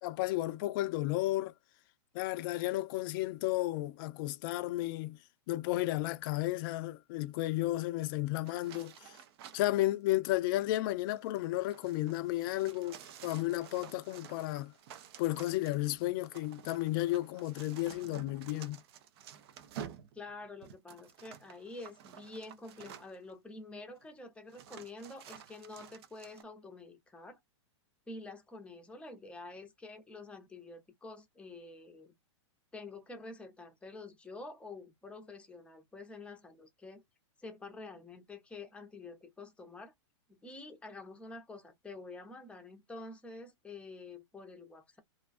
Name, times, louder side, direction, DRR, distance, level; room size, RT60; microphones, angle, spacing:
voice 1, 0.0-1.5 2.1-5.2 5.5-9.1 9.5-14.7 15.2-18.8, left 17 dB, 45° left, 0.4 m, -33 dB
sound 1, 8.4-9.9 10.9-23.3 24.0-24.1 24.5-26.4, right 9 dB, 55° right, 0.5 m, -51 dB
voice 2, 20.1-27.4 28.1-32.1 32.7-37.0 37.4-39.9 40.3-45.0, left 3 dB, 5° left, 0.6 m, -48 dB
2.4 x 2.2 x 2.4 m
hypercardioid pair, 125°, 15 cm